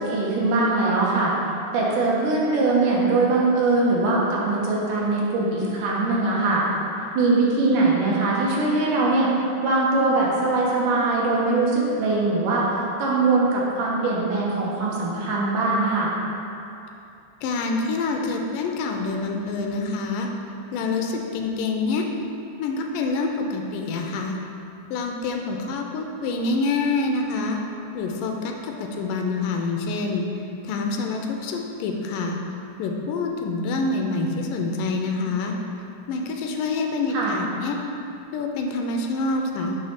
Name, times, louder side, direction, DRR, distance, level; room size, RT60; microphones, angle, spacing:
voice 1, 0.0-1.3 1.7-6.6 7.2-9.3 9.6-16.1 37.1-37.3, right 3 dB, 75° right, -4 dB, 2.4 m, -21 dB
voice 2, 17.4-20.3 20.7-22.1 22.6-24.4 24.9-27.6 27.9-30.3 30.6-32.4 32.8-35.6 36.1-37.8 38.3-39.8, left 3 dB, 85° left, 2 dB, 2.2 m, -26 dB
6.6 x 3.1 x 5.7 m, 2.6 s
omnidirectional pair, 3.7 m